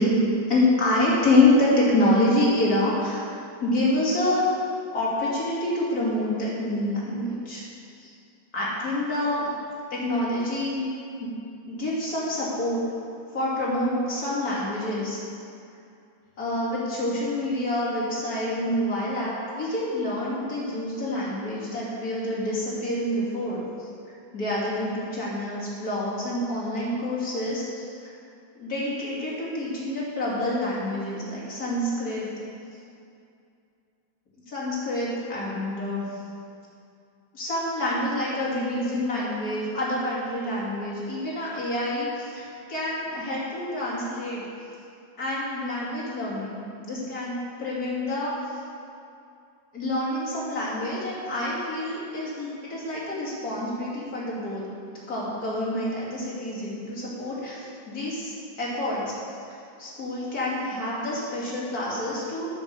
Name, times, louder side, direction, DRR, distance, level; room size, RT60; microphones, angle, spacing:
voice 1, 0.0-3.3 3.6-4.5 4.9-7.6 8.0-8.1 8.5-9.5 9.9-10.9 11.2-11.4 11.7-12.8 13.3-15.2 16.4-23.9 24.3-28.1 28.5-32.4 34.5-36.1 37.3-44.4 45.2-48.6 49.7-54.6 55.1-59.1 59.5-62.5, left 1 dB, 50° left, -7 dB, 3.0 m, -27 dB
10.5 x 6.1 x 7.0 m, 2.5 s
omnidirectional pair, 2.1 m